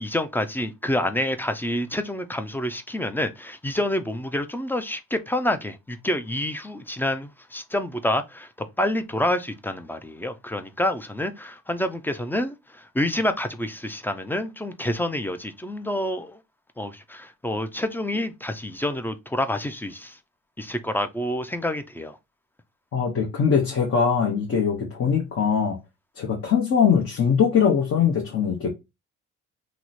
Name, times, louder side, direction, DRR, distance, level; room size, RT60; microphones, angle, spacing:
voice 1, 0.0-16.4 16.8-20.2 20.6-22.2, left 1 dB, 5° left, 0.3 m, -28 dB
voice 2, 22.9-25.8 26.2-28.7, left 7 dB, 50° left, 0.9 m, -21 dB
3.0 x 2.1 x 3.9 m
cardioid pair, 90°, 30 cm